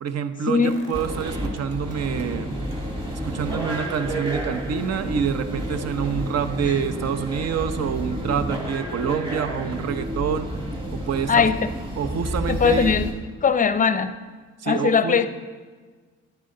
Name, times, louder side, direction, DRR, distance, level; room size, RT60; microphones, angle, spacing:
voice 1, 0.0-2.5 3.2-10.5 10.9-11.5 12.0-13.0 14.6-15.2, right 7 dB, 55° right, 10 dB, 0.8 m, -27 dB
sound 1, 0.6-2.3 2.7-8.5 8.9-9.0, equal, 35° right, 2.5 m, -46 dB
sound 2, 0.9-13.1, right 1 dB, 15° right, 2.4 m, -30 dB
voice 2, 12.5-13.1 13.4-14.1 14.7-15.3, left 6 dB, 25° left, 12 dB, 0.6 m, -19 dB
10.5 x 9.6 x 3.8 m, 1.4 s
cardioid pair, 90°, 30 cm